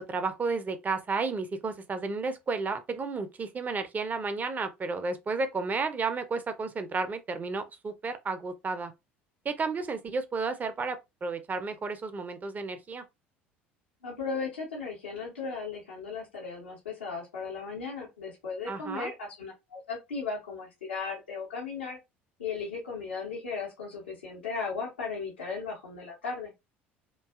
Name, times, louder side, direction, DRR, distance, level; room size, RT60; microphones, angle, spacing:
voice 1, 0.0-8.9 9.4-13.0 18.7-19.1, right 4 dB, 25° right, 0.5 m, -32 dB
voice 2, 14.0-22.0 22.4-26.5, left 4 dB, 80° left, 0.9 m, -36 dB
2.6 x 2.3 x 2.3 m
figure-of-eight pair, 65°, 6 cm